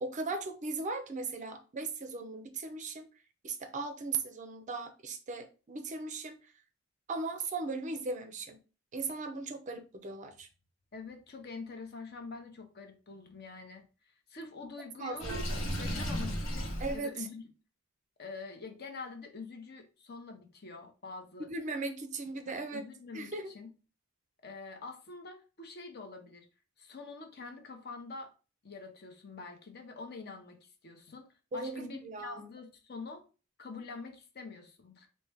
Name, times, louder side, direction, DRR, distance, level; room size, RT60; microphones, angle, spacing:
voice 1, 0.0-3.1 3.4-6.4 7.1-8.6 8.9-10.5 15.0-15.4 16.8-17.1 21.5-22.8 23.1-23.5 31.5-32.5, right 3 dB, 35° right, 0.4 m, -38 dB
voice 2, 10.9-15.3 15.8-17.4 18.2-21.5 22.5-23.7 24.4-26.4 26.8-28.3 28.6-31.3 31.5-33.2 33.6-35.1, left 4 dB, 50° left, 0.7 m, -46 dB
Water / Sink (filling or washing), 15.2-17.0, equal, 70° left, 1.0 m, -34 dB
4.2 x 2.1 x 3.3 m
head